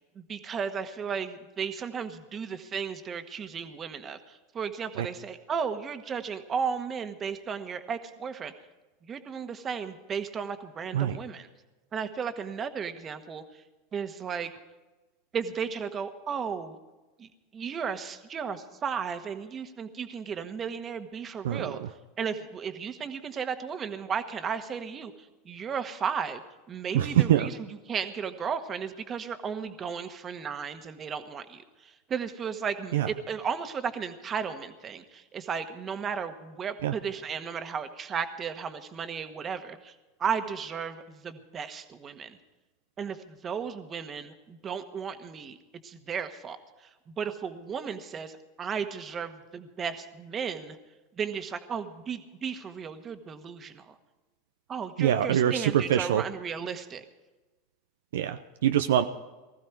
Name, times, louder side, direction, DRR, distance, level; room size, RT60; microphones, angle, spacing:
voice 1, 0.1-8.5 9.0-11.5 11.9-13.6 13.9-14.5 15.3-16.8 17.2-21.8 22.2-26.4 26.7-42.4 43.0-45.6 45.8-50.8 51.2-53.9 54.7-57.0, right 6 dB, 30° right, 8 dB, 1.5 m, -34 dB
voice 2, 21.4-21.9 26.9-27.5 32.9-33.1 36.8-36.9 55.0-56.2 58.1-59.0, right 11 dB, 75° right, 9 dB, 0.6 m, -24 dB
19.5 x 15.0 x 4.7 m, 1.1 s
hypercardioid pair, 90°, 0 cm